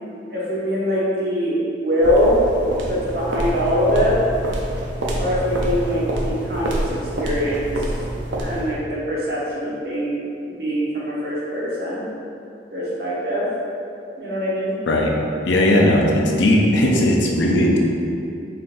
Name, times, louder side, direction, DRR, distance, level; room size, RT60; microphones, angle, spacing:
voice 1, 0.3-2.4 2.8-4.2 5.1-7.7 8.4-10.2 10.5-12.0 12.7-13.5 14.2-14.7, equal, 55° right, -7 dB, 1.0 m, -23 dB
sound 1, 2.0-8.8, right 1 dB, 85° right, 0.5 m, -26 dB
voice 2, 15.5-17.8, left 1 dB, 80° left, -1 dB, 0.5 m, -17 dB
4.3 x 3.7 x 2.6 m, 2.6 s
head